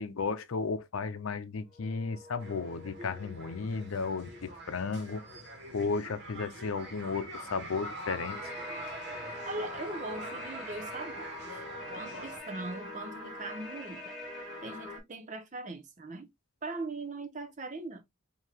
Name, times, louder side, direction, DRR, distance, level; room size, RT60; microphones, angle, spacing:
voice 1, 0.0-5.2 5.7-8.4, left 4 dB, 80° left, 0.6 m, -34 dB
sound 1, 1.6-6.5, left 5 dB, 25° left, 1.6 m, -56 dB
sound 2, 2.4-12.4, right 1 dB, 55° right, 1.3 m, -44 dB
sound 3, 8.3-15.0, left 1 dB, ahead, 1.9 m, -43 dB
voice 2, 9.5-11.6 11.9-14.1 14.6-16.3 16.6-18.0, right 2 dB, 35° right, 0.7 m, -40 dB
4.7 x 2.8 x 2.8 m
head